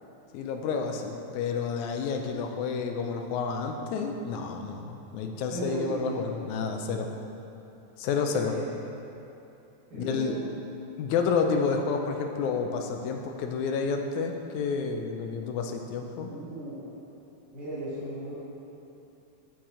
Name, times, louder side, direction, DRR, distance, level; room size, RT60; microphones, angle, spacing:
voice 1, 0.3-7.1 8.0-8.5 9.9-10.4 11.0-16.3, left 5 dB, 80° left, 3 dB, 2.0 m, -30 dB
voice 2, 5.5-6.2 8.2-8.6 9.9-10.4 16.2-16.8 17.5-18.3, right 1 dB, 75° right, -10 dB, 3.6 m, -36 dB
7.7 x 6.9 x 4.3 m, 2.8 s
omnidirectional pair, 3.4 m